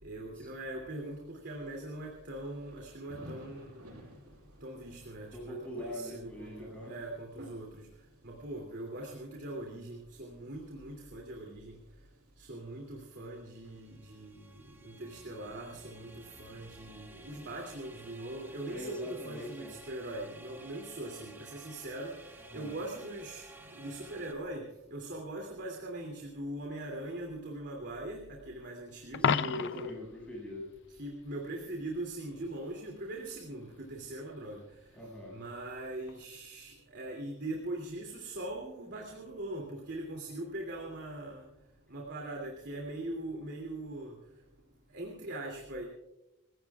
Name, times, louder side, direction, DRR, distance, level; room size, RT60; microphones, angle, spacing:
voice 1, 0.0-3.9 4.6-7.8 8.2-11.8 12.4-14.4 14.8-22.1 22.5-23.4 23.7-29.3 31.0-34.6 35.3-41.5 41.9-44.1 44.9-45.8, right 1 dB, 50° right, 1 dB, 2.8 m, -41 dB
Thunder / Rain, 0.9-17.8, left 1 dB, 85° right, 7.5 m, -59 dB
voice 2, 5.3-6.9 18.7-19.7 22.5-22.7 29.2-30.7 34.9-35.4, left 1 dB, 5° left, -3 dB, 7.3 m, -41 dB
sound 1, 13.0-24.3, right 2 dB, 10° right, 1.3 m, -54 dB
Coin (dropping), 29.1-30.0 36.1-36.2, left 7 dB, 55° left, 0.5 m, -30 dB
28.5 x 16.0 x 2.4 m, 0.92 s
head